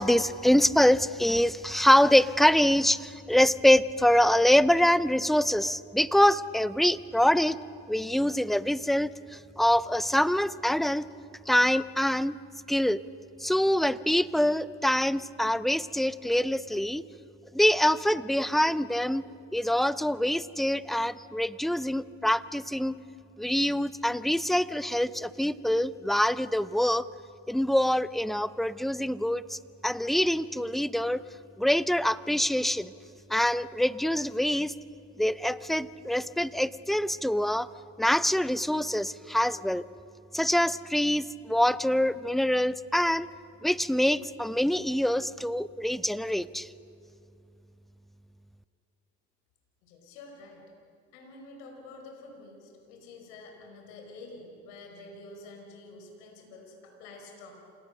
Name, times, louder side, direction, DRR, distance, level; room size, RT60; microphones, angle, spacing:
voice 1, 0.0-7.6 7.9-11.0 11.5-12.4 12.7-13.0 13.4-17.0 17.5-19.2 19.5-23.0 23.4-27.1 27.5-31.2 31.6-32.9 33.3-34.7 35.2-37.7 38.0-39.8 40.3-43.3 43.6-46.7, left 1 dB, ahead, 17 dB, 0.5 m, -25 dB
voice 2, 49.8-50.6 51.1-57.5, left 2 dB, 80° left, 2 dB, 4.8 m, -48 dB
28.0 x 17.5 x 6.6 m, 2.6 s
supercardioid pair, 85°, 33 cm